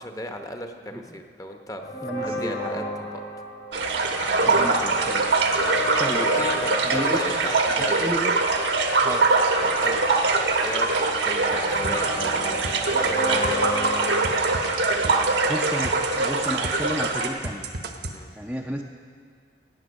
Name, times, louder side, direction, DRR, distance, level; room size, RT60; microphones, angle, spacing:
voice 1, 0.0-1.8 2.2-3.2 4.3-4.6 6.1-8.1 9.6-10.1 10.6-14.4 18.1-18.3, left 1 dB, 20° left, 5 dB, 0.9 m, -36 dB
sound 1, 1.8-15.6, left 1 dB, 70° left, 3.2 m, -33 dB
voice 2, 2.0-2.8 4.5-5.2 6.0-6.3 6.8-7.5 7.8-8.4 9.0-9.2 15.5-17.6 18.3-18.8, equal, 5° right, -1 dB, 0.5 m, -32 dB
sound 2, 3.7-17.3, right 3 dB, 80° right, 1.3 m, -23 dB
sound 3, 11.8-16.8 17.0-18.2, right 4 dB, 60° right, 1.0 m, -34 dB
16.5 x 8.9 x 6.3 m, 2.1 s
head